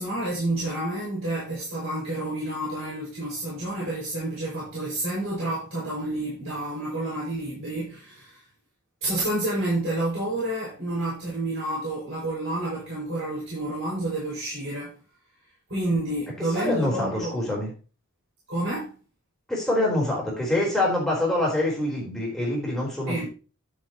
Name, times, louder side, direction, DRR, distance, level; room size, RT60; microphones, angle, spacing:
voice 1, 0.0-8.4 9.0-15.0 15.7-17.4 18.5-18.9 23.1-23.3, right 1 dB, 60° right, 5.8 m, -29 dB
voice 2, 16.5-17.7 19.5-23.3, left 1 dB, ahead, 4.2 m, -25 dB
11.5 x 7.2 x 3.0 m
head